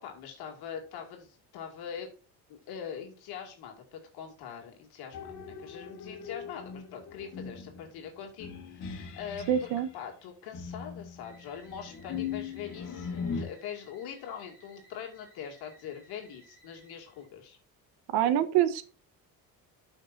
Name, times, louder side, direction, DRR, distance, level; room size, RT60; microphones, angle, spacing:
voice 1, 0.0-2.1 2.5-17.6, left 8 dB, 70° left, 1 dB, 2.6 m, -43 dB
sound 1, 5.1-9.8 10.5-13.4, left 6 dB, 50° left, 3.0 m, -40 dB
voice 2, 9.5-9.9 18.1-18.8, right 11 dB, 70° right, 11 dB, 1.2 m, -25 dB
sound 2, 11.2-17.3, right 2 dB, 20° left, 4.9 m, -60 dB
13.0 x 5.9 x 2.7 m, 0.37 s
cardioid pair, 170°, 39 cm